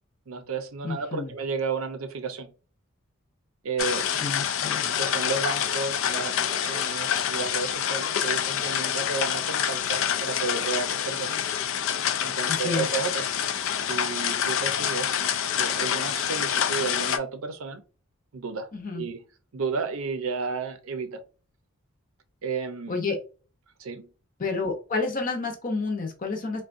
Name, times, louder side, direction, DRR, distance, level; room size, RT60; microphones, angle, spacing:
voice 1, 0.3-2.5 3.6-4.1 4.9-11.5 12.2-13.3 13.8-15.3 15.6-17.8 18.3-18.7 18.9-19.2 19.5-21.2 22.4-23.0 23.8-24.1, right 5 dB, 80° right, 0.6 m, -32 dB
voice 2, 0.8-1.3 4.2-4.9 12.3-12.9 18.7-19.0 22.9-23.2 24.4-26.6, left 3 dB, 40° left, 0.7 m, -30 dB
sound 1, 3.8-17.2, left 9 dB, 70° left, 0.3 m, -27 dB
3.5 x 2.2 x 2.5 m
head